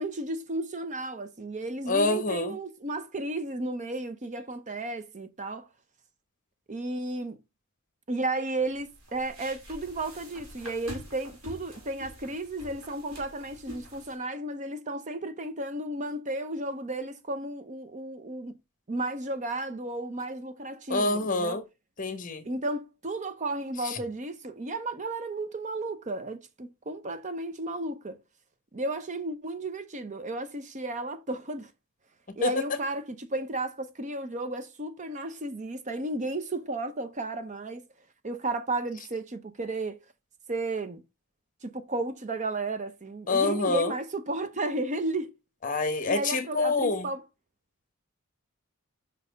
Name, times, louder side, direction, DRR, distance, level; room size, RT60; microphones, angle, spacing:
voice 1, 0.0-5.7 6.7-7.4 8.1-18.5 18.9-21.6 22.4-28.2 28.7-31.7 32.4-37.8 38.2-40.0 40.5-41.0 41.6-45.3 46.1-47.2, right 2 dB, 35° right, 0.7 m, -33 dB
voice 2, 1.9-2.6 20.9-21.6 22.0-22.5 23.8-24.0 32.3-32.5 43.3-43.9 45.6-47.1, left 3 dB, 40° left, 1.1 m, -27 dB
sound 1, 8.6-14.1, equal, 85° right, 2.8 m, -46 dB
5.5 x 4.2 x 5.0 m
head